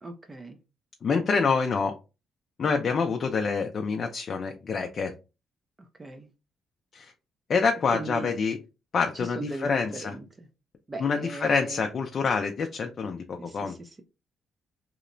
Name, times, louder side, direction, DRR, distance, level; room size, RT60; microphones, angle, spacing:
voice 1, 0.0-0.6 6.0-6.3 7.9-8.3 9.1-10.5 10.9-11.8 13.4-14.0, right 3 dB, 25° right, 5 dB, 0.4 m, -39 dB
voice 2, 1.0-1.9 2.6-5.1 6.9-7.1 7.5-8.6 8.9-10.1 11.0-13.7, left 5 dB, 50° left, 4 dB, 0.4 m, -26 dB
2.8 x 2.0 x 2.5 m, 0.28 s
cardioid pair, 90°, 0 cm